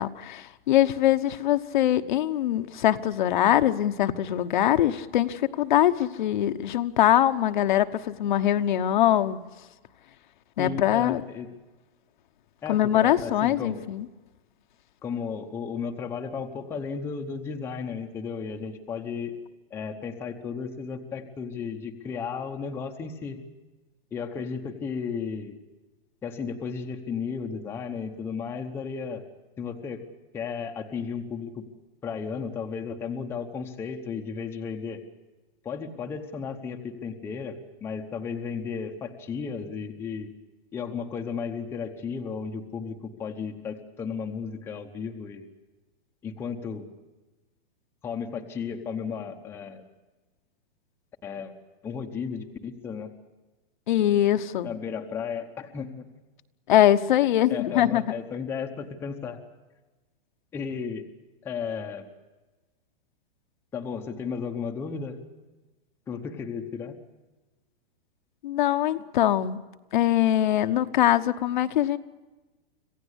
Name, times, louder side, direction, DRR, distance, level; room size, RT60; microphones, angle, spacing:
voice 1, 0.0-9.4 10.6-11.2 12.7-14.1 53.9-54.7 56.7-58.0 68.4-69.6 69.9-72.0, left 12 dB, 55° left, 9 dB, 1.1 m, -22 dB
voice 2, 10.6-11.5 12.6-13.8 15.0-19.3 19.7-23.4 24.1-25.6 26.2-29.2 29.6-30.0 30.3-31.6 32.0-35.0 35.6-40.3 40.7-45.5 46.2-46.9 48.0-49.8 51.2-51.5 51.8-53.1 54.6-56.1 57.5-59.4 60.5-61.0 61.4-62.1 63.7-65.2 66.1-66.9, left 6 dB, 10° left, 3 dB, 0.9 m, -34 dB
26.5 x 16.0 x 8.1 m, 1.2 s
supercardioid pair, 170°, 30 cm